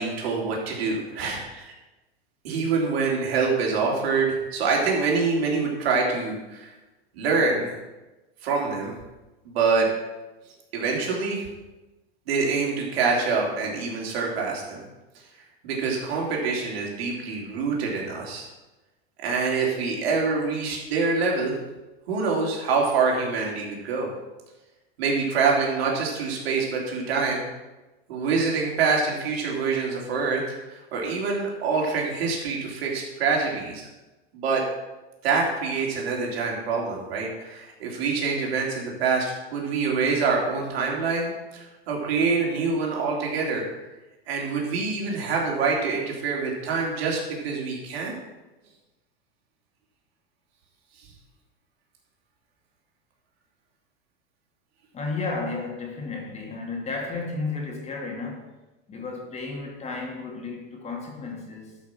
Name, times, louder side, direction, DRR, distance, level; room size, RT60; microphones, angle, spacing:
voice 1, 0.0-1.7 2.4-6.7 7.2-7.7 8.4-8.9 9.5-9.9 10.7-11.4 12.3-14.8 15.6-18.5 19.2-21.6 22.1-24.1 25.0-27.5 28.1-33.9 34.3-34.6 35.2-43.6 44.3-48.1, right 4 dB, 80° right, -2 dB, 3.5 m, -25 dB
voice 2, 54.9-58.5 58.9-61.8, left 3 dB, 20° left, 0 dB, 2.4 m, -33 dB
12.0 x 5.8 x 6.0 m, 1.1 s
supercardioid pair, 135°, 30 cm